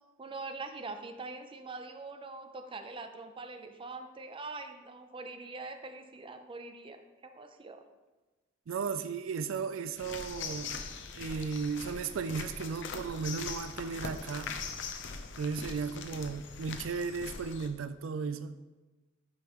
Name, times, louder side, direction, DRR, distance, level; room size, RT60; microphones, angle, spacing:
voice 1, 0.2-7.9, right 3 dB, 25° right, 0.5 m, -43 dB
voice 2, 8.7-10.8 11.1-14.5 15.4-18.6, right 5 dB, 85° right, 0.4 m, -35 dB
sound 1, 10.0-17.7, left 5 dB, 65° left, 0.6 m, -41 dB
9.2 x 5.2 x 3.0 m
head